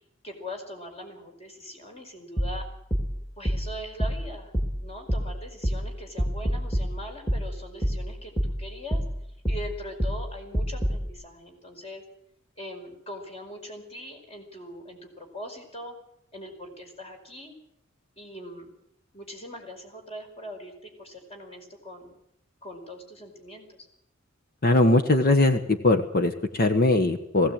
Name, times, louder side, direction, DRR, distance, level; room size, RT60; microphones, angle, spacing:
voice 1, 0.2-2.6 3.4-4.5 4.8-9.0 9.5-12.0 12.6-16.0 16.3-17.5 18.2-18.7 19.1-22.1 22.6-23.9, equal, 30° left, 3 dB, 5.1 m, -41 dB
sound 1, 2.4-11.1, equal, 10° left, 3.5 m, -29 dB
voice 2, 24.6-27.5, left 2 dB, 45° left, 7 dB, 1.3 m, -21 dB
19.5 x 16.5 x 9.0 m, 0.76 s
head